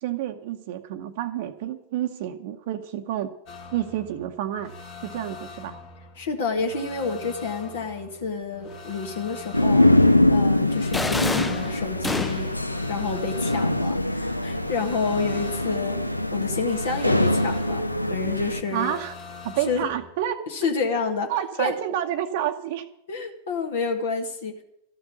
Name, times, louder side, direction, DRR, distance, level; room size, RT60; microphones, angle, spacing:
voice 1, 0.0-3.3 3.7-4.7 5.0-5.8 18.7-19.2 19.4-20.5 21.3-22.8, right 11 dB, 50° right, 4 dB, 0.8 m, -29 dB
sound 1, 3.5-20.1, left 4 dB, 45° left, 2.1 m, -43 dB
voice 2, 6.2-9.8 10.3-12.5 12.9-16.0 16.3-17.8 18.1-18.9 19.7-19.9 20.5-21.3 21.6-21.7 23.1-24.6, left 4 dB, 60° left, 4 dB, 1.7 m, -29 dB
sound 2, 9.5-18.6, left 1 dB, 85° left, 0.6 m, -23 dB
sound 3, 10.9-12.7, left 3 dB, 10° left, 0.4 m, -28 dB
13.5 x 7.0 x 9.4 m, 0.75 s
figure-of-eight pair, 90°, 0 cm